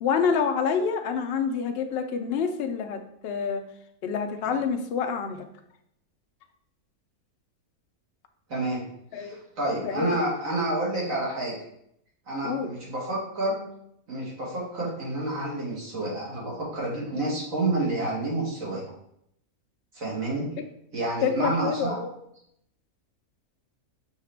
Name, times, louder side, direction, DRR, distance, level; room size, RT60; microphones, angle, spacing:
voice 1, 0.0-3.6 4.0-5.5 9.1-9.4 9.8-10.2 12.4-12.7 21.2-22.1, left 6 dB, 65° left, 5 dB, 0.6 m, -27 dB
voice 2, 8.5-8.8 9.1-11.5 12.3-13.6 14.1-18.8 19.9-20.5 20.9-22.0, right 2 dB, 70° right, -5 dB, 2.0 m, -29 dB
5.6 x 2.9 x 3.3 m, 0.74 s
omnidirectional pair, 1.5 m